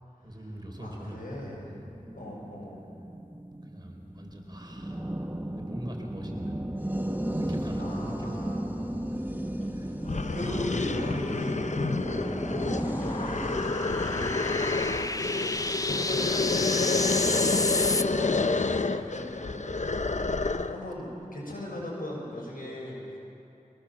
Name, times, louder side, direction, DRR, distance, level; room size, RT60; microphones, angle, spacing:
voice 1, 0.2-1.9 3.6-5.1 5.5-6.6 7.4-8.5 8.8-9.3 9.7-10.1 10.4-11.5 12.2-12.7 17.2-17.6, right 1 dB, 30° right, 1 dB, 4.5 m, -42 dB
voice 2, 0.8-1.6 2.1-2.8 7.8-8.6 9.9-10.0 10.3-15.3 15.8-17.1 17.7-19.5 19.8-20.4 20.7-23.2, left 1 dB, 85° left, -4 dB, 7.1 m, -39 dB
sound 1, 1.4-16.9, right 1 dB, 15° right, 1.7 m, -35 dB
sound 2, 9.7-9.8 10.1-20.9, left 3 dB, 55° left, 0.8 m, -29 dB
sound 3, 10.9-18.0, left 2 dB, 25° left, 0.6 m, -32 dB
23.5 x 18.5 x 7.4 m, 2.7 s
wide cardioid pair, 40°, 14 cm